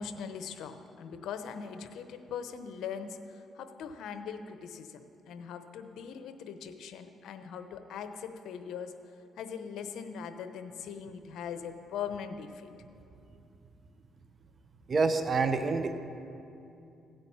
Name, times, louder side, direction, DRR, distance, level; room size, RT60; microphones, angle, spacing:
voice 1, 0.0-5.0 5.3-8.9 9.4-12.7, left 7 dB, 80° left, 8 dB, 0.8 m, -41 dB
voice 2, 14.9-15.9, right 4 dB, 40° right, 8 dB, 1.0 m, -27 dB
16.5 x 9.0 x 5.7 m, 2.7 s
cardioid pair, 90°, 0 cm